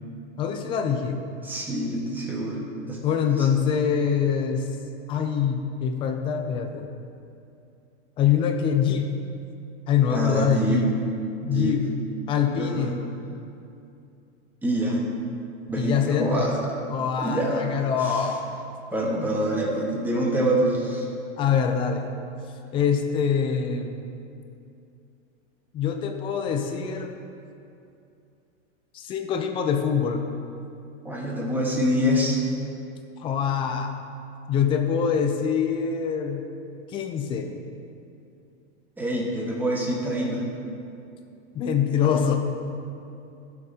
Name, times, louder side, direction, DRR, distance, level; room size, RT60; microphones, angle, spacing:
voice 1, 0.4-1.2 3.0-4.7 5.1-6.9 8.2-9.1 9.9-10.9 11.5-11.9 12.3-13.0 15.7-16.5 16.9-18.4 21.4-22.1 22.7-24.1 25.7-27.1 28.9-30.2 33.2-33.9 34.5-36.5 36.9-37.5 41.5-42.4, left 7 dB, 15° left, 5 dB, 0.3 m, -24 dB
voice 2, 1.4-3.0 3.4-3.5 10.1-10.8 11.4-11.8 12.6-12.9 14.6-15.0 15.7-16.6 17.2-17.5 18.0-18.3 18.9-21.1 31.0-32.4 39.0-40.4, right 1 dB, 5° right, -4 dB, 1.4 m, -26 dB
15.5 x 6.6 x 2.8 m, 2.6 s
supercardioid pair, 150°, 35 cm